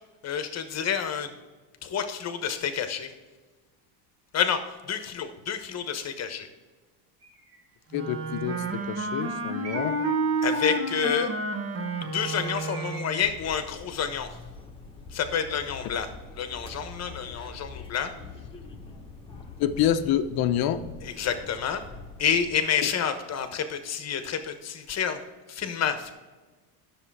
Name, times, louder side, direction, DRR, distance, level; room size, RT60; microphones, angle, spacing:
voice 1, 0.2-1.3 1.8-3.1 4.3-6.5 10.4-11.3 12.1-14.3 15.1-16.1 16.4-18.1 21.0-21.8 22.2-25.2 25.5-26.1, left 7 dB, 30° left, 8 dB, 1.2 m, -29 dB
Bird, 7.2-7.7 8.4-9.0 9.6-10.2 12.5-13.5, right 4 dB, 60° right, 2.9 m, -45 dB
voice 2, 7.9-10.0 19.6-20.8, left 10 dB, 50° left, 10 dB, 0.8 m, -27 dB
Wind instrument woodwind instrument, 7.9-13.3, right 2 dB, 30° right, 1.2 m, -30 dB
sound 1, 13.2-22.6, left 3 dB, 10° left, 1.3 m, -44 dB
10.0 x 7.0 x 4.7 m, 1.3 s
supercardioid pair, 120°, 48 cm